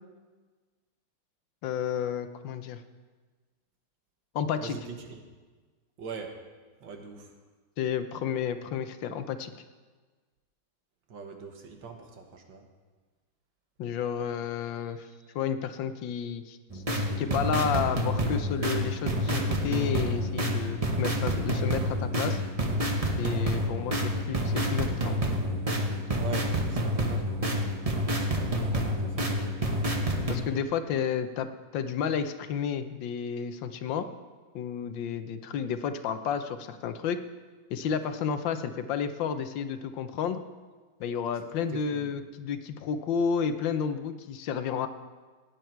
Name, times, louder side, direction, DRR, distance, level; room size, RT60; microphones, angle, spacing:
voice 1, 1.6-2.8 4.3-4.8 7.8-9.5 13.8-15.1 15.3-22.4 23.2-25.2 30.3-31.5 31.7-34.1 34.5-37.2 37.7-40.4 41.0-44.9, left 7 dB, 80° left, 10 dB, 1.5 m, -31 dB
voice 2, 4.6-5.2 6.0-6.4 6.8-7.3 11.1-12.6 26.2-27.4 27.9-29.6 41.7-42.1, right 5 dB, 80° right, 4 dB, 2.1 m, -42 dB
sound 1, 16.7-30.4, equal, 25° right, 0.9 m, -28 dB
16.5 x 9.5 x 4.5 m, 1.4 s
omnidirectional pair, 2.1 m